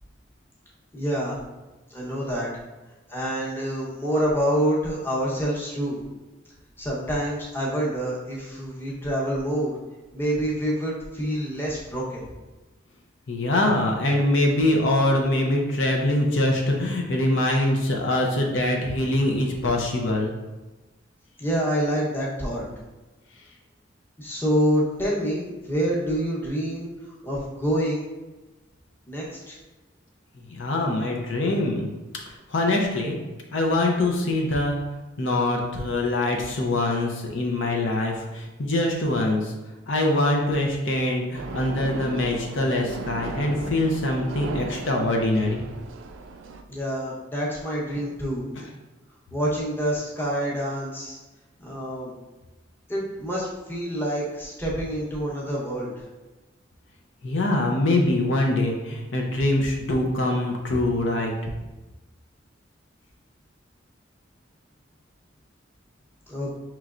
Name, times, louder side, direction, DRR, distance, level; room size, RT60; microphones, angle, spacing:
voice 1, 0.9-1.4 1.9-2.5 3.1-6.0 6.8-9.8 10.1-12.2 21.4-22.7 24.2-26.9 27.2-28.0 29.1-29.6 46.7-48.5 49.3-51.2 51.6-52.2 52.9-55.9 66.3-66.5, equal, 10° left, -5 dB, 1.0 m, -27 dB
voice 2, 13.3-20.3 30.5-31.9 32.3-33.2 33.5-34.8 35.2-39.5 39.9-45.6 57.2-61.3, left 1 dB, 70° left, 0 dB, 0.7 m, -23 dB
sound 1, 41.3-46.6, right 4 dB, 90° right, 0.4 m, -36 dB
5.7 x 3.1 x 2.5 m, 1.1 s
head